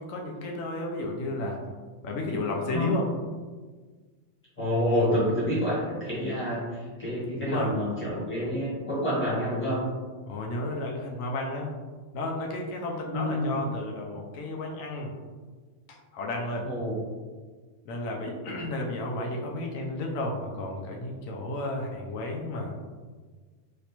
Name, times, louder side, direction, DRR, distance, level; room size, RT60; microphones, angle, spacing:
voice 1, 0.0-1.6 2.0-3.1 7.4-7.7 10.3-11.7 12.1-15.1 15.9-16.7 17.9-22.7, left 2 dB, 90° left, 0 dB, 1.0 m, -32 dB
voice 2, 2.7-3.0 4.6-9.9 13.1-13.6 16.6-16.9, equal, 10° left, -10 dB, 1.4 m, -28 dB
3.3 x 2.8 x 2.8 m, 1.4 s
omnidirectional pair, 1.3 m